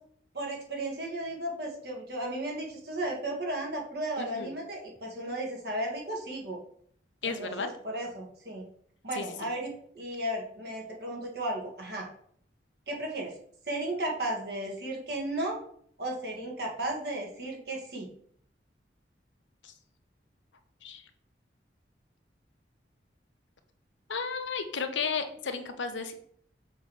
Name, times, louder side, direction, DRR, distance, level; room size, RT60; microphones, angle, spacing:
voice 1, 0.3-6.6 7.2-8.6 9.0-12.1 12.9-13.3 13.7-15.6 16.0-18.1, right 1 dB, 60° right, -1 dB, 1.7 m, -34 dB
voice 2, 4.2-4.5 7.2-7.7 9.1-9.5 19.6-19.7 20.8-21.0 24.1-26.1, left 5 dB, 85° left, 7 dB, 0.8 m, -33 dB
6.2 x 3.1 x 5.5 m, 0.63 s
head